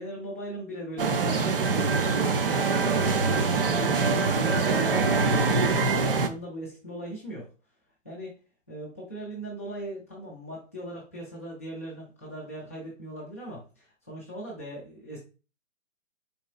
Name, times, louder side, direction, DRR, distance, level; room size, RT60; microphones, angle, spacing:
voice 1, 0.0-2.9 3.3-7.5 8.0-8.4 8.7-15.2, right 1 dB, 10° left, -7 dB, 0.5 m, -39 dB
sound 1, 1.0-6.3, right 4 dB, 45° right, 0.4 m, -24 dB
4.5 x 4.0 x 2.3 m, 0.33 s
hypercardioid pair, 170°, 39 cm